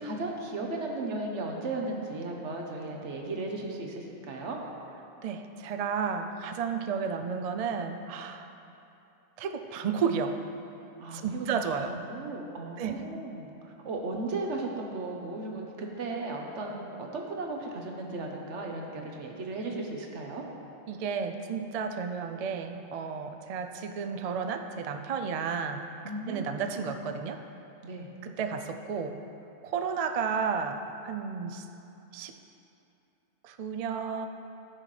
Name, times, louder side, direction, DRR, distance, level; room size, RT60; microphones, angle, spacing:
voice 1, 0.0-4.6 11.0-20.4 26.0-26.8 27.8-28.1, right 2 dB, 85° right, 1 dB, 1.3 m, -36 dB
voice 2, 5.2-8.5 9.4-10.4 11.1-12.0 12.8-13.0 20.9-25.9 26.3-27.4 28.2-29.2 29.6-31.7 32.1-32.4 33.4-34.3, right 6 dB, 55° right, 7 dB, 0.4 m, -32 dB
14.5 x 6.3 x 3.3 m, 2.8 s
omnidirectional pair, 1.2 m